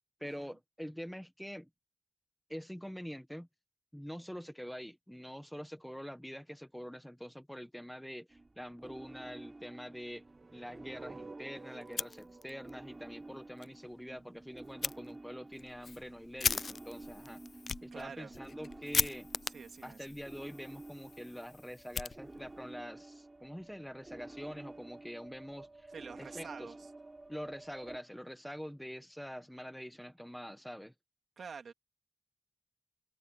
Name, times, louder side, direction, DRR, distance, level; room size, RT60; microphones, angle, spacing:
voice 1, 0.2-1.7 2.5-3.5 3.9-10.2 10.5-17.4 17.8-19.3 19.8-25.9 26.2-26.7 27.3-30.9, equal, ahead, 1.3 m, -45 dB
sound 1, 8.3-28.0, right 2 dB, 25° right, 3.7 m, -51 dB
sound 2, 10.1-14.2, right 3 dB, 40° right, 1.7 m, -53 dB
Fire, 11.8-12.7 13.1-13.2 13.6-13.7 14.8-15.0 15.5-22.7, left 5 dB, 70° left, 0.3 m, -38 dB
voice 2, 17.9-18.4 19.5-20.2 25.9-26.9 31.4-31.7, right 6 dB, 85° right, 2.8 m, -47 dB
wide cardioid pair, 120°, 0 cm